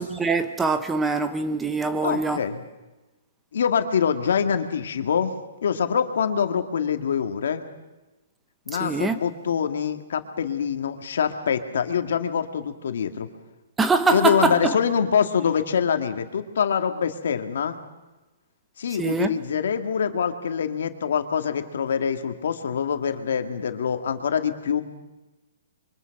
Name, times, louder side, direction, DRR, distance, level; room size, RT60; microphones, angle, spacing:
voice 1, 0.0-2.4 8.8-9.2 13.8-14.8 19.0-19.3, right 4 dB, 10° right, 0.9 m, -23 dB
voice 2, 2.0-2.6 3.5-5.3 5.6-7.6 8.7-13.3 14.1-17.8 18.8-24.8, left 7 dB, 70° left, 2.0 m, -25 dB
25.5 x 24.0 x 5.9 m
hypercardioid pair, 150°, 0 cm